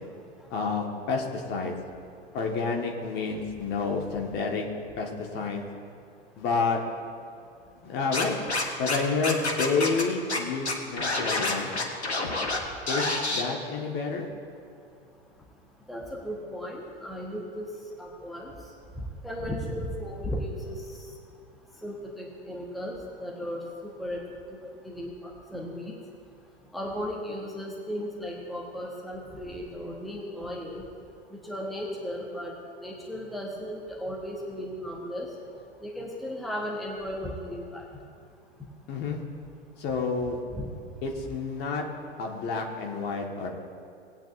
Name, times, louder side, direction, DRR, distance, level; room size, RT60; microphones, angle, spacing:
voice 1, 0.5-1.7 2.3-4.6 5.0-5.6 6.4-6.8 7.8-8.4 8.8-11.7 12.9-14.3 38.9-39.2 39.8-40.4 41.0-41.8 42.2-43.5, left 4 dB, 30° left, 1 dB, 1.6 m, -29 dB
Scratching (performance technique), 8.1-9.0 9.2-10.0 10.3-10.4 10.7-12.6 12.9-13.4, left 2 dB, 80° left, 1.4 m, -28 dB
voice 2, 15.9-17.7 18.0-18.5 19.2-20.7 21.8-22.9 23.2-23.6 24.0-24.2 24.6-25.9 26.7-30.8 31.4-32.5 32.8-35.3 35.8-37.8 40.5-40.7, equal, ahead, -2 dB, 1.2 m, -35 dB
19.5 x 9.1 x 2.6 m, 2.5 s
figure-of-eight pair, 95°, 32 cm